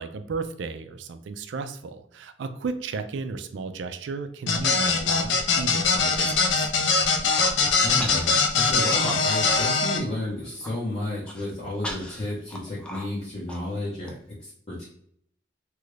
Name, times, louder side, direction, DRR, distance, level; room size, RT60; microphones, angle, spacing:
voice 1, 0.0-6.7, right 4 dB, 70° right, 9 dB, 0.4 m, -34 dB
sound 1, 4.5-10.0, left 4 dB, 75° left, 0.5 m, -22 dB
Human voice, 7.1-7.6 8.0-8.3 8.7-9.6 9.9-10.0 10.4-10.7 11.2-14.1, equal, 5° left, 0.4 m, -37 dB
voice 2, 7.8-14.9, left 1 dB, 35° left, -7 dB, 0.9 m, -32 dB
3.1 x 2.4 x 3.2 m, 0.68 s
head